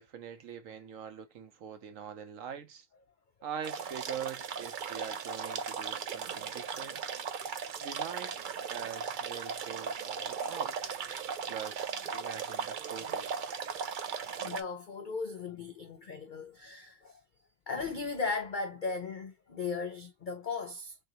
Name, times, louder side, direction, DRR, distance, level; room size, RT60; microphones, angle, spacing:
voice 1, 0.0-2.9 3.4-7.0 7.8-8.3 8.7-10.8 11.5-13.6, right 8 dB, 65° right, 1.1 m, -43 dB
sound 1, 3.6-14.6, right 6 dB, 90° right, 0.4 m, -37 dB
voice 2, 14.4-17.2 17.7-21.0, left 4 dB, 65° left, 0.4 m, -37 dB
3.8 x 3.3 x 2.9 m
omnidirectional pair, 1.5 m